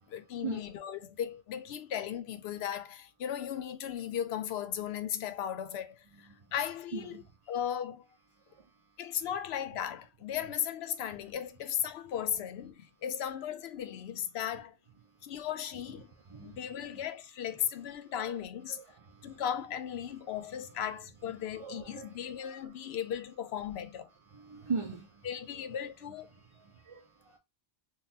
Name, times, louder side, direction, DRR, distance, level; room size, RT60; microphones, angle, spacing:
voice 1, 0.1-7.2 7.5-8.0 9.0-14.8 15.2-16.1 16.4-18.8 19.2-24.1 25.2-26.3, left 9 dB, 85° left, 0.8 m, -36 dB
voice 2, 6.9-7.5 8.4-9.0 15.0-15.2 15.9-16.0 16.3-17.0 18.0-18.3 18.7-19.4 20.7-20.8 21.5-23.0 24.3-25.3 25.5-25.7 26.3-27.4, right 5 dB, 40° right, 0.6 m, -42 dB
3.9 x 2.3 x 2.6 m
omnidirectional pair, 1.0 m